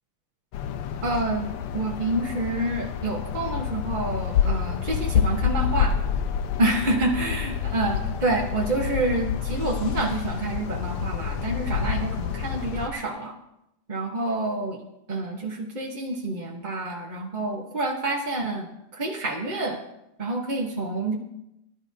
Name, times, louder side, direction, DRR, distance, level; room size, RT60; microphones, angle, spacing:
sound 1, 0.5-12.9, left 8 dB, 90° left, 1.7 m, -28 dB
voice 1, 1.0-5.9 6.6-13.3 13.9-14.8 15.1-19.8 20.2-21.2, right 2 dB, 35° right, -1 dB, 0.8 m, -28 dB
19.5 x 12.0 x 2.8 m, 0.86 s
omnidirectional pair, 2.4 m